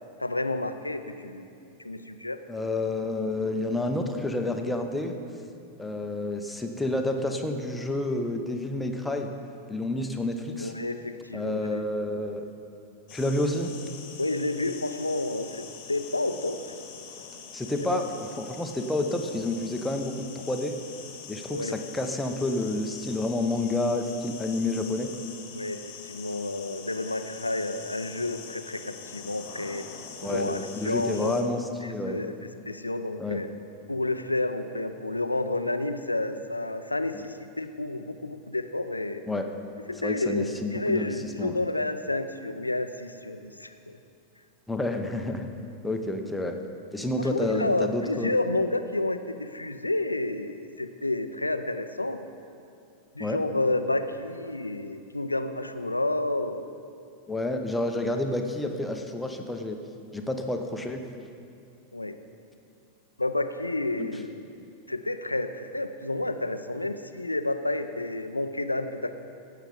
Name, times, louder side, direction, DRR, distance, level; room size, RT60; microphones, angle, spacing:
voice 1, 0.2-1.5 1.8-2.4 10.6-11.8 14.2-16.6 17.8-18.0 21.5-21.8 25.5-29.9 30.2-31.5 31.8-32.3 32.7-33.5 33.9-39.2 39.9-44.0 47.2-52.3 53.1-56.7 61.9-62.2 63.2-64.5 64.9-69.1, left 2 dB, 85° left, 9 dB, 0.5 m, -30 dB
voice 2, 2.5-5.1 5.8-9.3 9.7-10.7 11.3-12.5 13.1-13.7 17.5-18.1 18.4-20.8 21.3-25.1 30.2-32.2 33.2-33.4 39.3-39.5 40.0-41.1 41.4-41.6 44.7-45.5 45.8-46.6 46.9-48.4 53.2-53.4 57.3-59.8 60.1-61.0 64.0-64.1, left 2 dB, 5° left, 4 dB, 0.8 m, -29 dB
sound 1, 13.1-31.4, left 6 dB, 45° left, 1.2 m, -44 dB
15.5 x 5.8 x 5.2 m, 2.5 s
figure-of-eight pair, 90°, 0 cm